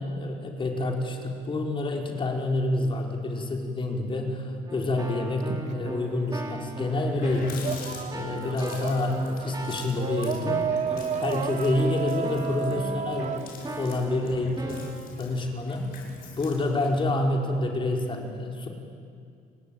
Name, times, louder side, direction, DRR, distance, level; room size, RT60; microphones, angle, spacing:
voice 1, 0.0-10.6 11.1-13.3 13.7-15.9 16.4-18.7, left 2 dB, 30° left, 1 dB, 4.9 m, -28 dB
Keyboard (musical), 4.7-15.0, right 1 dB, 25° right, 5.2 m, -38 dB
sound 1, 5.4-6.6 7.0-14.7, right 7 dB, 45° right, 0.9 m, -33 dB
Water tap faucet, 6.6-6.7 6.9-17.0, left 4 dB, 60° left, 7.3 m, -46 dB
30.0 x 21.0 x 9.3 m, 2.3 s
cardioid pair, 110°, 17 cm